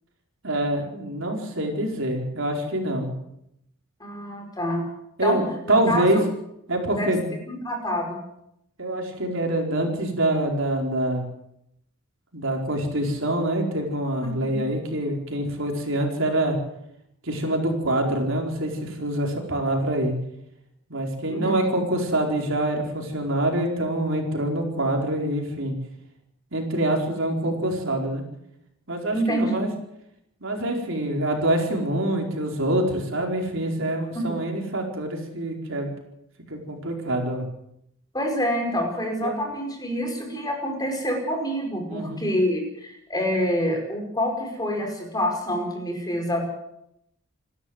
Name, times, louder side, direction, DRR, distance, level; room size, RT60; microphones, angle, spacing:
voice 1, 0.4-3.1 5.2-6.2 6.7-7.3 8.8-11.2 12.3-16.6 17.2-20.1 20.9-25.7 26.5-28.2 28.9-29.7 30.4-35.9 36.5-37.5 39.2-39.3 41.9-42.2, right 1 dB, 60° right, 2 dB, 4.6 m, -25 dB
voice 2, 4.0-4.8 5.2-5.4 5.9-6.1 6.9-7.1 7.5-8.2 14.5-14.6 21.3-21.5 29.1-29.7 38.1-46.4, equal, 15° left, 2 dB, 4.9 m, -27 dB
28.0 x 12.5 x 8.1 m, 0.79 s
head